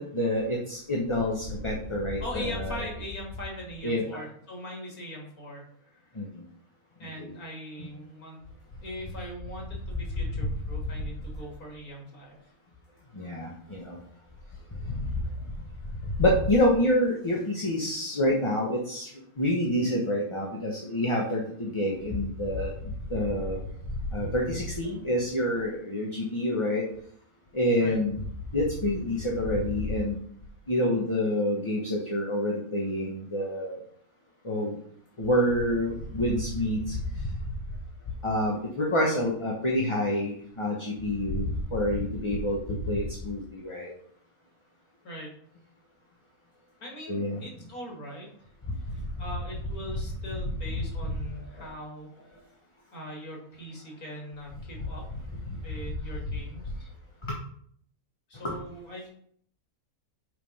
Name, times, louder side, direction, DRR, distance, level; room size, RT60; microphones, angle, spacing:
voice 1, 0.0-2.8 3.8-4.2 6.2-6.3 7.2-7.3 7.8-7.9 13.2-14.0 16.2-19.1 19.4-22.7 23.1-23.6 24.1-26.8 27.5-28.2 28.5-30.2 30.7-33.8 34.4-34.8 35.2-36.9 38.2-43.9 47.1-47.4 51.6-51.7 58.4-58.6, left 1 dB, 20° left, -2 dB, 1.1 m, -27 dB
voice 2, 2.2-6.0 7.0-8.4 8.8-12.4 27.8-28.0 45.0-45.4 46.8-48.3 48.8-52.1 52.9-55.2 55.6-56.9 58.3-59.1, equal, 90° left, -1 dB, 2.9 m, -41 dB
6.3 x 5.4 x 5.5 m, 0.64 s
omnidirectional pair, 1.5 m